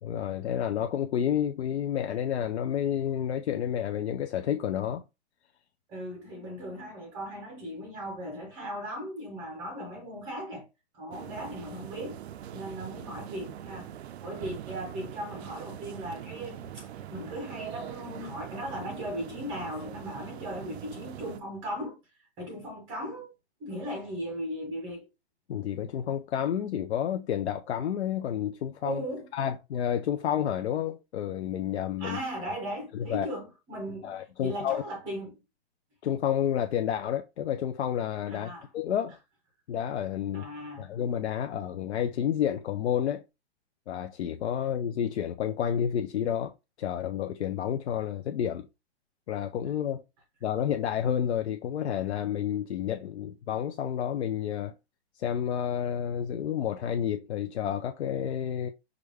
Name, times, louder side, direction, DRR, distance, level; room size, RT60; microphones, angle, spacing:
voice 1, 0.0-5.0 25.5-29.0 29.3-32.2 32.9-33.3 34.0-34.8 36.0-39.2 39.7-40.5 40.8-43.2 43.9-46.5 46.8-48.7 49.3-50.0 50.4-54.7 55.2-58.7, left 9 dB, 75° left, 0.6 m, -30 dB
voice 2, 5.9-10.7 10.9-12.2 12.5-13.9 14.2-22.0 22.4-23.3 23.6-25.1 28.8-29.3 32.0-35.4 38.3-38.7 40.3-40.9, equal, 10° right, 0.5 m, -37 dB
sound 1, 11.1-21.4, right 10 dB, 75° right, 0.5 m, -42 dB
5.0 x 2.2 x 3.4 m
hypercardioid pair, 165°, 33 cm